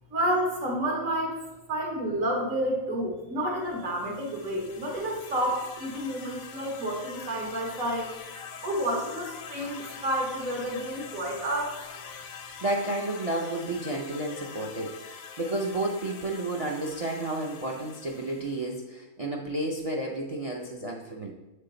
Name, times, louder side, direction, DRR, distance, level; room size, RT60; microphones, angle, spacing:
voice 1, 0.1-1.4 1.7-8.1 8.6-11.7, right 1 dB, 85° right, -1 dB, 1.8 m, -30 dB
sound 1, 3.7-18.8, left 6 dB, 90° left, 1.1 m, -44 dB
voice 2, 12.6-21.3, right 2 dB, 50° right, 0 dB, 0.4 m, -31 dB
7.4 x 3.7 x 3.9 m, 1.1 s
omnidirectional pair, 1.4 m